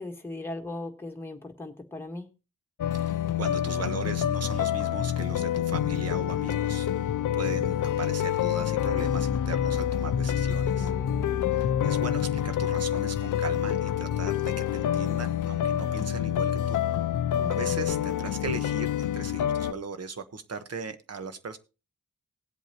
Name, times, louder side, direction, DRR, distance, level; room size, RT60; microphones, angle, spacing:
voice 1, 0.0-2.3 10.7-11.6 17.4-17.7, left 2 dB, 5° left, 1.6 m, -39 dB
sound 1, 2.8-19.7, left 10 dB, 90° left, 0.5 m, -27 dB
voice 2, 2.9-6.9 7.4-10.9 11.5-16.8 17.5-21.6, right 4 dB, 55° right, 1.2 m, -38 dB
19.5 x 8.2 x 3.0 m
wide cardioid pair, 160°, 30 cm